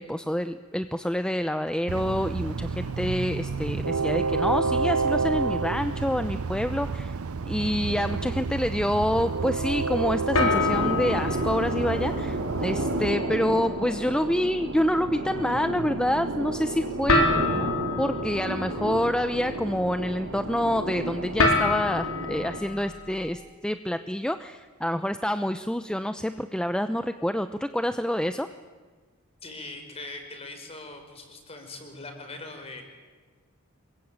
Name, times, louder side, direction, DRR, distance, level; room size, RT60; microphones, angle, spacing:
voice 1, 0.0-7.1 7.5-17.3 18.0-28.5, equal, 5° left, 9 dB, 0.7 m, -27 dB
Train, 1.9-13.1, right 4 dB, 90° right, 0.7 m, -29 dB
sound 1, 5.1-6.6 7.0-7.4 7.9-8.0 10.3-23.3, left 3 dB, 90° left, 4.7 m, -30 dB
sound 2, 10.3-22.6, right 1 dB, 70° right, 3.7 m, -31 dB
voice 2, 29.4-32.8, left 2 dB, 30° left, 5 dB, 4.9 m, -41 dB
26.5 x 22.0 x 8.9 m, 1.4 s
head